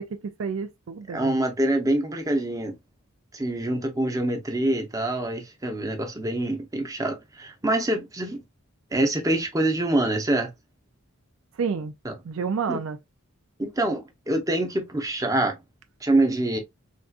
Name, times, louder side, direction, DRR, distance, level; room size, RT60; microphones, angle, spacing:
voice 1, 0.0-1.4 11.5-11.9 12.2-13.0, right 5 dB, 60° right, 0.4 m, -30 dB
voice 2, 1.1-2.8 3.3-8.4 8.9-10.5 12.0-12.1 12.7-12.8 13.6-15.6 16.0-16.6, right 1 dB, 15° right, 0.7 m, -25 dB
3.5 x 2.6 x 2.4 m
head